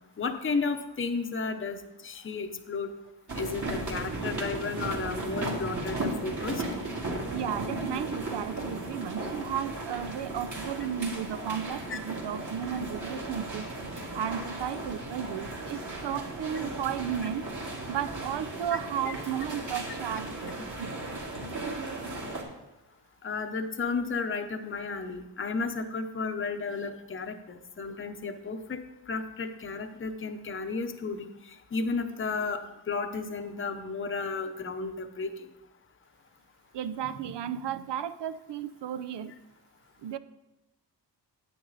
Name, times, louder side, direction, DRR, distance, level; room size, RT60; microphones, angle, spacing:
voice 1, 0.2-2.9 3.4-6.6 11.9-12.0 18.7-18.8 23.2-28.8 29.1-35.5, left 4 dB, 30° left, 6 dB, 0.7 m, -33 dB
sound 1, 3.3-22.4, right 2 dB, 45° right, 2.1 m, -36 dB
voice 2, 7.3-13.7 14.1-17.5 17.9-20.9 36.7-39.3 40.0-40.2, right 9 dB, 80° right, 13 dB, 0.6 m, -34 dB
9.5 x 8.7 x 4.0 m, 0.95 s
wide cardioid pair, 115°, 42 cm